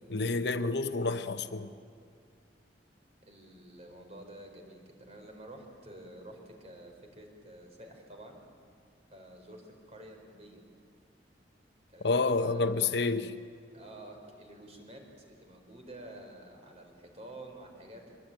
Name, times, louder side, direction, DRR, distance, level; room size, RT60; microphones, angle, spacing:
voice 1, 0.1-1.7 12.0-13.3, left 3 dB, 70° left, 1.0 m, -29 dB
voice 2, 3.2-8.4 9.1-10.6 11.9-12.6 13.7-18.2, right 1 dB, 35° right, 4.6 m, -50 dB
24.0 x 21.5 x 9.0 m
head